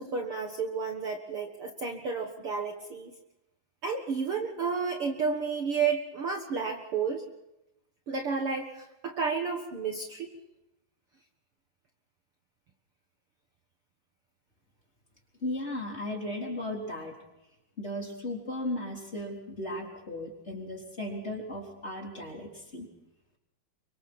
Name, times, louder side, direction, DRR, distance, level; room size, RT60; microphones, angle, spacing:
voice 1, 0.0-3.1 3.8-7.2 8.1-10.3, right 5 dB, 50° right, 3 dB, 2.2 m, -31 dB
voice 2, 15.4-17.2 17.8-22.9, left 1 dB, 20° left, 0 dB, 4.0 m, -36 dB
29.5 x 25.0 x 4.4 m, 0.92 s
omnidirectional pair, 3.8 m